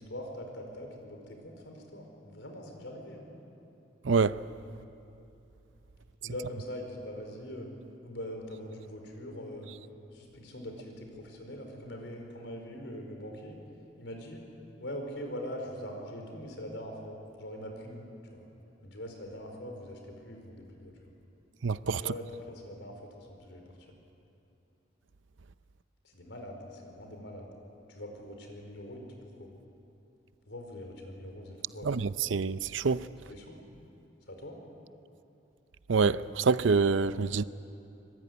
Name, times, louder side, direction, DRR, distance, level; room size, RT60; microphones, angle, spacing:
voice 1, 0.0-3.3 6.2-7.7 8.0-9.7 10.1-13.6 14.0-14.4 14.8-18.5 18.8-20.9 21.9-23.6 26.1-27.5 27.9-29.1 29.3-29.5 30.5-32.0 33.3-33.6 34.3-34.6, equal, 75° left, 4.8 m, -42 dB
voice 2, 4.0-4.4 21.6-22.0 31.8-33.1 35.9-37.4, right 4 dB, 85° right, 0.6 m, -26 dB
24.5 x 22.0 x 9.5 m
head